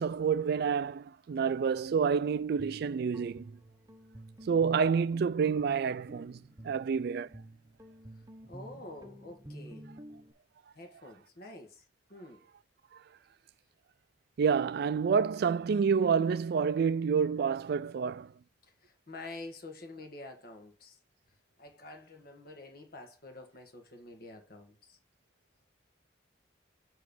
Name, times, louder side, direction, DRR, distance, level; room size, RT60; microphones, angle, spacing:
voice 1, 0.0-3.6 4.5-7.3 14.4-18.3, right 6 dB, 55° right, 0.3 m, -28 dB
Guitar, 2.3-10.3, right 1 dB, 20° right, 0.7 m, -50 dB
voice 2, 8.5-9.8 10.7-11.8 12.1-12.4 18.8-21.0 21.6-25.0, left 2 dB, 55° left, 1.4 m, -48 dB
7.6 x 3.2 x 5.2 m
head